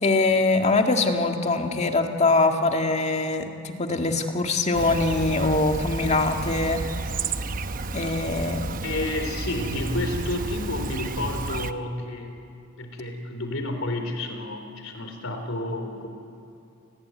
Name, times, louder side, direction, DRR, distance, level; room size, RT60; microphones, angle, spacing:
voice 1, 0.0-6.8 7.9-8.7, left 3 dB, 35° left, 4 dB, 2.0 m, -23 dB
Chirp tweet, 4.7-11.7, right 3 dB, 45° right, 0.9 m, -31 dB
voice 2, 8.8-16.1, left 1 dB, 80° left, 6 dB, 3.8 m, -30 dB
29.5 x 20.0 x 9.5 m, 2.7 s
head